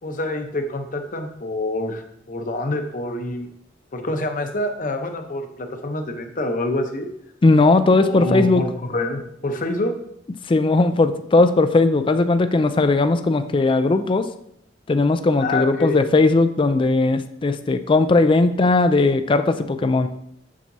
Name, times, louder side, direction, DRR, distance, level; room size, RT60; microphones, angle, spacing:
voice 1, 0.0-3.5 3.9-7.1 8.0-9.9 15.4-16.0, left 2 dB, 45° left, 5 dB, 0.8 m, -26 dB
voice 2, 7.4-8.6 10.5-14.3 14.9-20.1, left 3 dB, 25° left, 10 dB, 0.4 m, -18 dB
7.4 x 7.1 x 2.7 m, 0.73 s
head